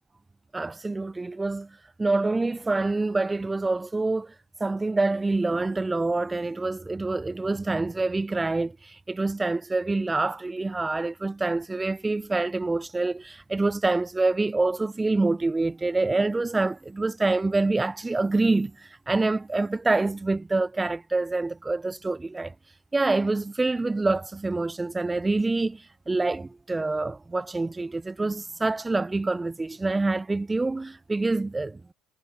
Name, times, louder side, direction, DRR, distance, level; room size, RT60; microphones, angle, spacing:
voice 1, 0.5-4.3 4.6-22.5 22.9-31.9, right 3 dB, 15° right, 1.3 m, -26 dB
supercardioid pair, 80°, 0 cm